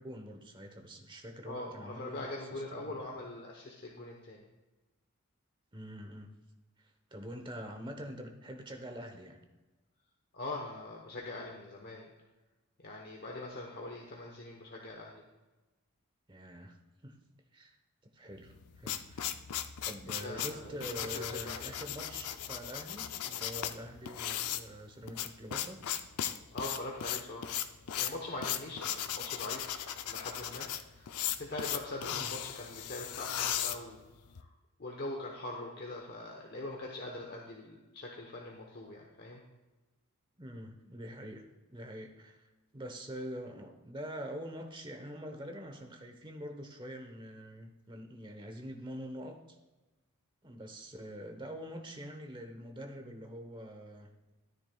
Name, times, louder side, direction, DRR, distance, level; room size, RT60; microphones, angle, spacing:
voice 1, 0.0-3.0 5.7-6.3 6.8-9.4 16.3-16.8 17.0-17.1 17.5-17.7 18.1-19.3 19.8-25.8 32.1-32.3 40.4-41.4 41.7-42.5 42.7-49.4 50.4-54.1, equal, 20° right, 4 dB, 1.0 m, -45 dB
voice 2, 1.4-4.4 10.3-12.1 12.8-15.2 20.1-21.7 26.5-27.5 28.0-34.0 34.4-34.5 34.8-39.4, left 2 dB, 45° left, -1 dB, 1.0 m, -42 dB
sound 1, 18.5-34.4, left 10 dB, 85° left, 0.5 m, -37 dB
13.5 x 9.6 x 2.3 m, 1.1 s
head